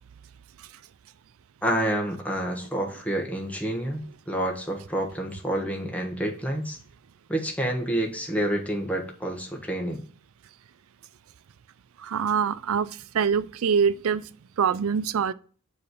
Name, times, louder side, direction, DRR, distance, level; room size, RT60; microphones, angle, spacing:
voice 1, 1.6-6.8 7.3-10.0, right 1 dB, 5° left, 1.2 m, -28 dB
voice 2, 12.0-14.3 14.6-15.3, right 6 dB, 80° right, 0.4 m, -24 dB
6.8 x 3.2 x 5.3 m
head